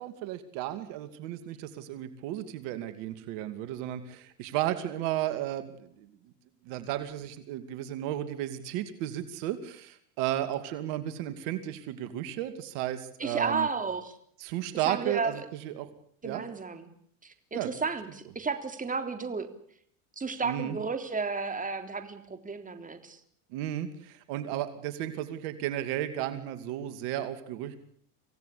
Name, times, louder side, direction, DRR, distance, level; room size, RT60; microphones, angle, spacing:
voice 1, 0.0-6.1 6.7-13.7 14.4-15.9 16.2-16.4 17.5-17.7 20.4-20.8 23.5-27.8, right 13 dB, 70° right, 10 dB, 2.6 m, -34 dB
voice 2, 13.2-14.2 14.9-15.4 16.2-16.9 17.2-19.5 20.2-23.2, right 4 dB, 20° right, 7 dB, 3.6 m, -33 dB
26.0 x 17.0 x 8.5 m, 0.65 s
supercardioid pair, 95°, 44 cm